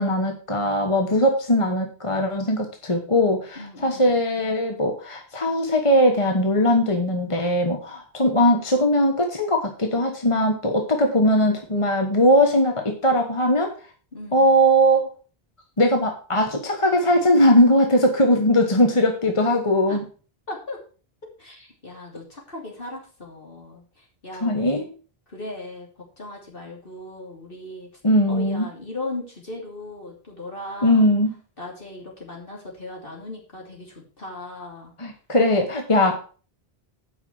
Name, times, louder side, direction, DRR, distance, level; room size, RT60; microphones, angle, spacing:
voice 1, 0.0-13.7 14.3-15.0 15.8-20.0 24.4-24.9 28.0-28.7 30.8-31.4 35.0-36.2, equal, 30° left, 3 dB, 1.3 m, -20 dB
voice 2, 3.5-4.2 14.1-14.6 19.9-20.0 20.5-20.8 21.4-24.8 25.3-25.9 26.2-27.9 28.3-31.1 31.6-34.9, left 2 dB, 60° left, -1 dB, 3.2 m, -37 dB
9.0 x 5.6 x 6.1 m, 0.39 s
omnidirectional pair, 1.0 m